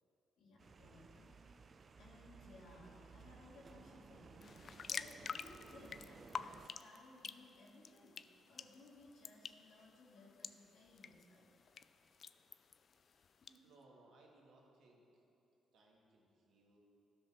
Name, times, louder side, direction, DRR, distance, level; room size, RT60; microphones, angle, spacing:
voice 1, 0.4-11.5, left 2 dB, 75° left, -4 dB, 1.9 m, -61 dB
sound 1, 0.6-6.7, right 5 dB, 40° right, 0.4 m, -59 dB
sound 2, 4.4-13.6, left 6 dB, 50° left, 0.3 m, -50 dB
voice 2, 13.1-15.2 15.7-16.8, right 2 dB, 75° right, -2 dB, 1.9 m, -66 dB
13.0 x 5.3 x 6.1 m, 2.8 s
cardioid pair, 90°, 0 cm